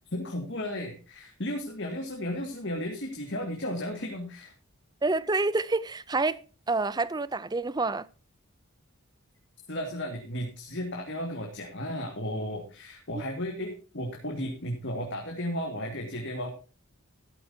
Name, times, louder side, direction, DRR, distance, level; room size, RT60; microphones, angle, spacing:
voice 1, 0.1-4.5 9.7-16.5, left 1 dB, 55° left, 2.1 m, -34 dB
voice 2, 5.0-6.4 6.7-8.1 13.1-13.2, right 3 dB, 20° right, 0.5 m, -28 dB
13.0 x 12.5 x 2.8 m
head